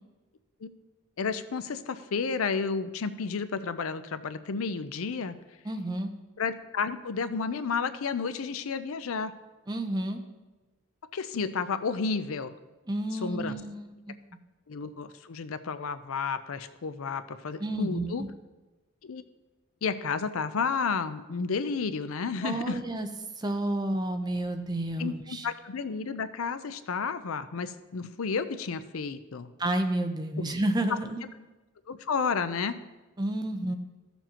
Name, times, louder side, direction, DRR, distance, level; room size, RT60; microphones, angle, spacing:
voice 1, 1.2-5.3 6.4-9.3 11.1-12.5 13.1-13.6 14.7-18.2 19.0-19.2 19.8-22.8 25.0-29.5 31.9-32.8, left 5 dB, 80° left, 12 dB, 0.5 m, -31 dB
voice 2, 5.6-6.1 9.7-10.2 12.9-14.2 17.6-18.3 22.4-23.1 23.4-25.5 29.6-31.2 33.2-33.7, right 1 dB, 20° right, 5 dB, 0.6 m, -30 dB
15.0 x 7.0 x 2.9 m, 1.1 s
head